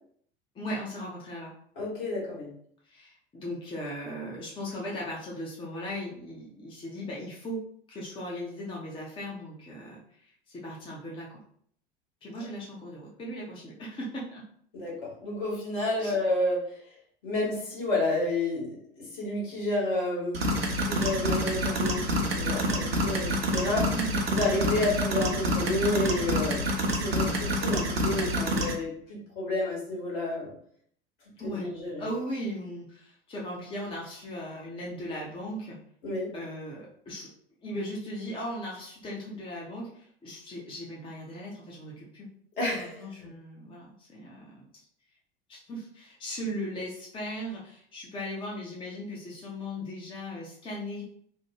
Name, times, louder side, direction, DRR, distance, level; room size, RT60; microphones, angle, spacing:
voice 1, 0.5-1.5 2.8-11.4 12.2-14.5 16.0-16.1 23.9-24.3 31.4-31.7 32.0-35.8 36.3-37.3 37.6-42.3 42.7-44.7 45.5-51.0, equal, 15° left, -4 dB, 0.6 m, -38 dB
voice 2, 1.8-2.5 14.7-16.8 17.2-20.4 20.8-23.9 24.3-30.5 31.4-32.0 36.0-36.3 42.6-43.3, left 2 dB, 60° left, -4 dB, 1.5 m, -30 dB
sound 1, 20.3-28.7, equal, 80° right, 0.6 m, -28 dB
3.1 x 2.1 x 2.9 m, 0.63 s
figure-of-eight pair, 75°, 30 cm